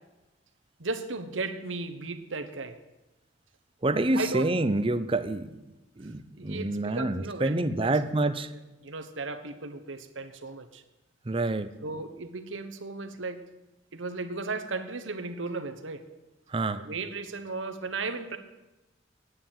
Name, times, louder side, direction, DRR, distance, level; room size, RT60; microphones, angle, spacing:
voice 1, 0.8-2.8 4.1-4.5 6.0-6.1 6.4-8.0 8.8-10.8 11.8-13.4 13.9-16.0 16.8-18.4, right 3 dB, 85° right, 9 dB, 1.2 m, -35 dB
voice 2, 3.8-5.5 6.0-8.5 11.3-11.7 16.5-16.8, right 2 dB, 30° right, 12 dB, 0.6 m, -27 dB
9.5 x 8.9 x 8.9 m, 1.0 s
head